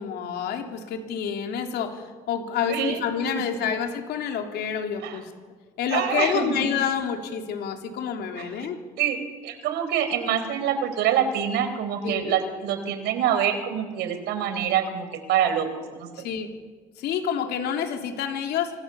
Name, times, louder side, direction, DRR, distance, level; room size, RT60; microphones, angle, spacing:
voice 1, 0.0-5.3 5.8-8.8 12.0-12.4 16.2-16.5 17.0-18.7, left 7 dB, 75° left, 3 dB, 3.8 m, -28 dB
voice 2, 2.7-3.0 3.3-3.4 5.0-5.2 5.9-6.7 8.4-8.7 9.0-15.7 16.0-16.1, right 9 dB, 85° right, 8 dB, 4.6 m, -26 dB
27.0 x 25.0 x 7.3 m, 1.5 s
cardioid pair, 110°, 17 cm